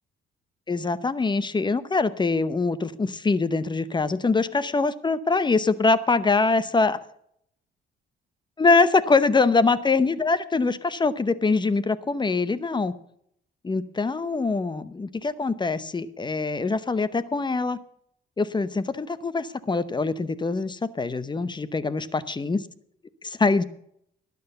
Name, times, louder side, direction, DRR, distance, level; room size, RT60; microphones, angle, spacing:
voice 1, 0.7-7.0 8.6-12.9 13.6-17.8 18.4-22.6 23.2-23.6, left 3 dB, 20° left, 16 dB, 0.8 m, -23 dB
12.0 x 9.3 x 6.8 m, 0.71 s
cardioid pair, 90°, 20 cm